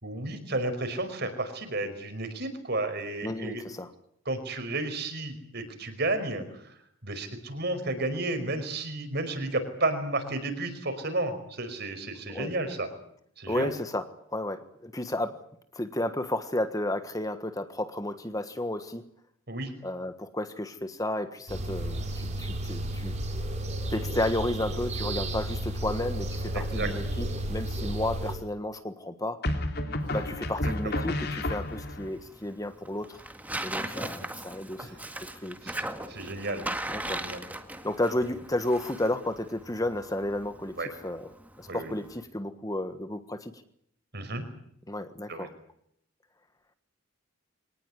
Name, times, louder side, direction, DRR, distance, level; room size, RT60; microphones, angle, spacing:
voice 1, 0.0-3.6 4.3-6.8 7.0-12.9 13.4-13.7 19.5-19.7 26.5-26.9 30.6-31.0 34.8-35.0 35.6-36.7 37.0-37.4 40.8-40.9 41.7-41.9 44.1-44.5 45.3-45.5, right 2 dB, 50° right, 9 dB, 5.2 m, -32 dB
voice 2, 3.2-3.9 12.3-12.5 13.5-15.4 15.7-19.0 19.8-23.1 23.9-29.4 30.1-33.2 33.6-34.9 35.2-35.6 36.9-37.2 37.8-40.8 41.0-41.3 41.6-43.5 44.9-45.5, left 1 dB, 15° left, 10 dB, 1.4 m, -32 dB
sound 1, 21.5-28.4, right 1 dB, 35° right, 5.6 m, -32 dB
sound 2, 26.8-27.3 29.4-32.1, left 1 dB, 50° left, 3.2 m, -31 dB
Tearing, 30.0-42.2, right 1 dB, 10° right, 1.9 m, -39 dB
24.0 x 19.0 x 9.9 m, 0.70 s
head